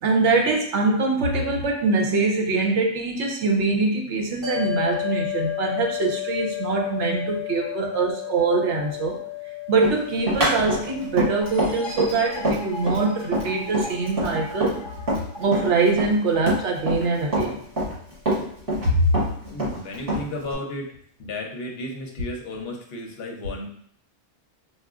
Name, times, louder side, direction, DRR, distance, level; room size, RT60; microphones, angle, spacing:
voice 1, 0.0-9.2 9.7-14.8 15.4-17.6 18.8-19.0, right 3 dB, 70° right, 1 dB, 1.0 m, -23 dB
sound 1, 4.4-16.9, left 14 dB, 20° right, 1.3 m, -34 dB
Run, 9.8-15.3 15.5-17.1 17.3-18.9 19.1-20.5, right 1 dB, 50° right, 1.6 m, -25 dB
sound 2, 11.4-16.9, left 1 dB, 40° left, 0.4 m, -39 dB
voice 2, 19.5-20.9 21.2-23.7, left 1 dB, 60° left, 1 dB, 0.9 m, -33 dB
4.7 x 2.4 x 2.4 m, 0.63 s
omnidirectional pair, 1.3 m